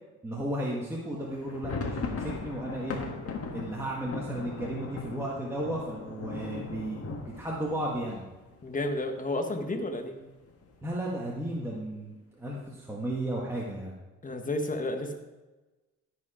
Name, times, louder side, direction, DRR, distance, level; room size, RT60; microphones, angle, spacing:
voice 1, 0.2-3.0 3.5-7.0 7.2-8.2 10.8-13.9, right 1 dB, 10° right, -4 dB, 1.6 m, -34 dB
sound 1, 1.3-9.0 9.3-9.4 9.7-9.9 10.5-10.9, left 4 dB, 50° left, 1.7 m, -38 dB
voice 2, 8.6-10.2 14.2-15.1, left 1 dB, 25° left, 4 dB, 1.5 m, -31 dB
13.5 x 5.0 x 5.0 m, 1.2 s
cardioid pair, 90°, 30 cm